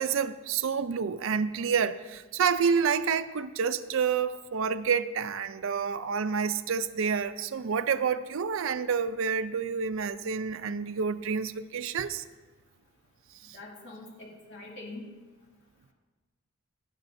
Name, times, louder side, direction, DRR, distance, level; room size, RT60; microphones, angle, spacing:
voice 1, 0.0-12.2, right 6 dB, 65° right, 11 dB, 0.4 m, -28 dB
voice 2, 13.5-15.0, left 2 dB, 60° left, -2 dB, 2.4 m, -44 dB
17.0 x 10.5 x 2.6 m, 1.3 s
head